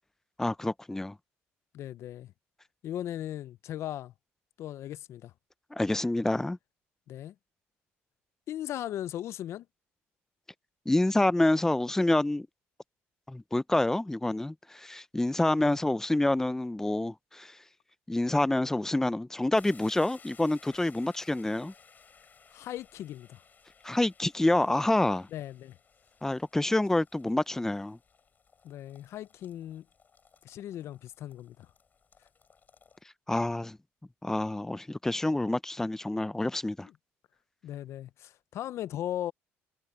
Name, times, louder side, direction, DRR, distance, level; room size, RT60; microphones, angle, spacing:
voice 1, 0.4-1.1 5.7-6.6 10.9-12.5 13.3-17.5 18.1-21.7 23.8-25.3 26.2-28.0 33.3-33.8 34.2-36.9, left 1 dB, 10° left, 0.6 m, -27 dB
voice 2, 1.7-2.3 2.8-4.1 4.6-5.3 7.1-7.3 8.5-9.6 15.6-15.8 22.5-23.4 25.3-25.8 28.6-29.8 30.4-31.7 36.8-36.9 37.6-39.3, left 12 dB, 60° left, 0.7 m, -38 dB
sound 1, 19.5-33.0, left 6 dB, 35° left, 6.4 m, -60 dB
supercardioid pair, 90°, 5 cm